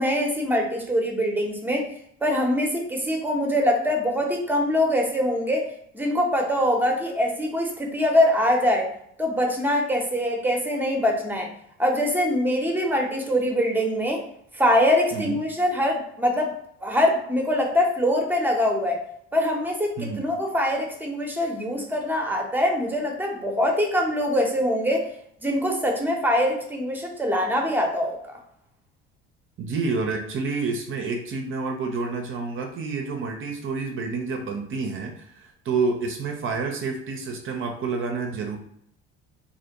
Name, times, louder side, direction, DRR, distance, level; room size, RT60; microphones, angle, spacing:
voice 1, 0.0-1.9 2.2-5.7 5.9-8.9 9.2-11.5 11.8-14.2 14.5-16.5 16.8-19.0 19.3-25.0 25.4-28.2, left 1 dB, 5° right, 1 dB, 0.7 m, -23 dB
voice 2, 29.6-38.6, right 4 dB, 40° right, 3 dB, 0.5 m, -29 dB
2.5 x 2.1 x 2.8 m, 0.70 s
hypercardioid pair, 60°, 31 cm